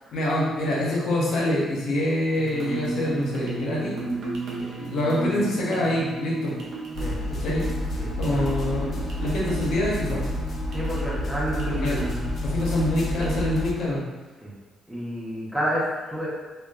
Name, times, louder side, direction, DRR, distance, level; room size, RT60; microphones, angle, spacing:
voice 1, 0.1-4.0 4.6-6.5 7.4-7.6 8.2-10.2 11.8-12.0 12.4-14.0, left 1 dB, 75° left, -5 dB, 0.7 m, -25 dB
sound 1, 2.3-13.5, right 3 dB, 70° right, 0.5 m, -34 dB
sound 2, 6.9-13.7, left 1 dB, 50° left, 0.3 m, -30 dB
voice 2, 8.0-8.4 10.7-12.3 14.4-14.5 14.9-16.3, equal, 5° right, -7 dB, 0.9 m, -30 dB
2.5 x 2.2 x 2.3 m, 1.3 s
cardioid pair, 90°, 0 cm